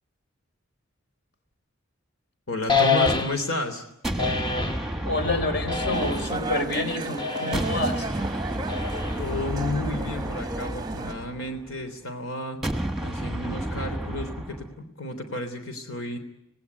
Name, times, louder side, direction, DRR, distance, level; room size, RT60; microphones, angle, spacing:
voice 1, 2.5-3.8 9.2-12.6 13.0-16.2, left 1 dB, 80° left, 6 dB, 3.4 m, -32 dB
sound 1, 2.7-3.6 4.2-4.9 5.7-6.4 7.2-7.8 8.7-9.4, left 5 dB, 20° left, 1.2 m, -26 dB
sound 2, 4.0-7.1 7.5-11.8 12.6-14.7, right 1 dB, ahead, 1.4 m, -32 dB
voice 2, 5.0-8.1, left 2 dB, 55° left, 8 dB, 3.8 m, -28 dB
sound 3, 5.9-11.1, right 2 dB, 20° right, 0.9 m, -33 dB
27.5 x 18.5 x 9.6 m, 0.86 s
head